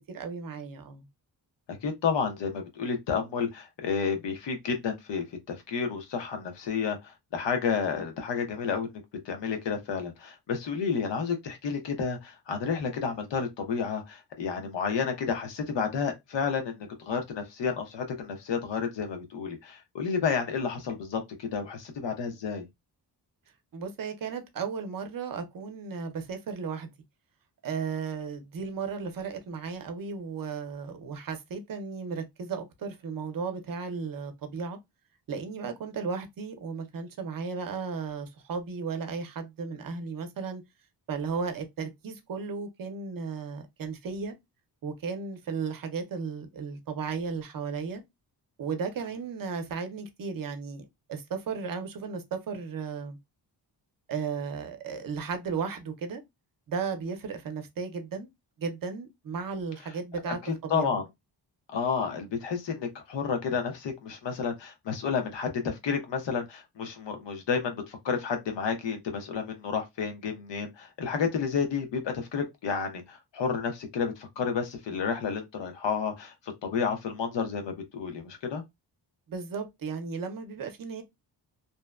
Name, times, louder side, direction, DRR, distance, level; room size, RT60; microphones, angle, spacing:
voice 1, 0.1-1.0 23.7-26.9 27.6-34.8 35.3-40.6 41.1-44.4 44.8-48.0 48.6-53.2 54.1-56.2 56.7-58.3 58.6-61.0 79.3-81.0, right 5 dB, 50° right, 0.6 m, -35 dB
voice 2, 1.7-22.6 60.3-60.4 60.7-61.1 61.7-76.3 76.6-78.6, left 6 dB, 80° left, 0.9 m, -31 dB
2.8 x 2.1 x 2.2 m
wide cardioid pair, 165°, 42 cm